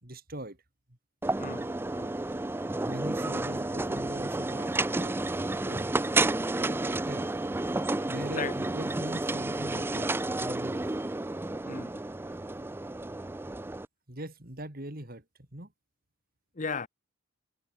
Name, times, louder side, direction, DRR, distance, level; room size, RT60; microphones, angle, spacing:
voice 1, 0.0-0.6 2.9-5.2 5.6-5.9 6.6-7.3 8.1-10.1 10.4-10.8 13.4-13.5 14.1-15.7, right 1 dB, 45° right, 3.2 m, -41 dB
sound 1, 1.2-13.9, right 2 dB, 10° right, 0.3 m, -31 dB
voice 2, 1.4-2.1 8.4-8.5 11.7-12.0 16.6-16.9, left 5 dB, 35° left, 0.7 m, -36 dB
head